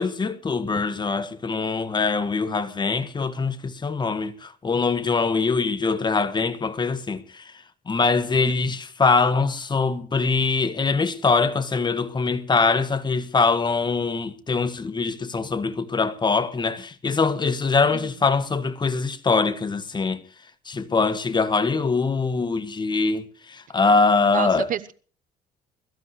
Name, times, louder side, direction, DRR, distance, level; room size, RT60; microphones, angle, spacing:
voice 1, 0.0-7.5 7.9-20.2 20.6-24.7, left 4 dB, 25° left, 1.6 m, -23 dB
voice 2, 24.2-24.9, right 10 dB, 50° right, 0.9 m, -30 dB
22.0 x 15.0 x 3.2 m
cardioid pair, 110°, 17 cm